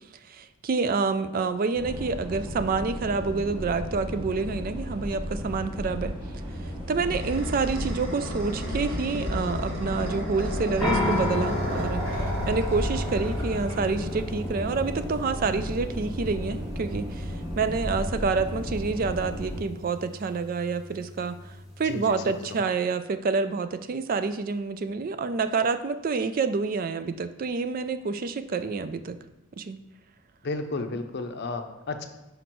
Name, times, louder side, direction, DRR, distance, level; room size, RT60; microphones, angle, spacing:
voice 1, 0.3-6.2 6.9-29.2 29.6-29.8, right 4 dB, 40° right, 11 dB, 0.3 m, -28 dB
sound 1, 1.7-19.6, equal, 25° right, 1.1 m, -35 dB
sound 2, 6.5-14.4, equal, 70° right, 2.1 m, -33 dB
sound 3, 10.8-22.6, left 2 dB, ahead, 2.5 m, -34 dB
voice 2, 21.8-22.6 30.4-32.0, left 3 dB, 50° left, 6 dB, 0.6 m, -33 dB
6.0 x 5.1 x 4.6 m, 0.97 s
head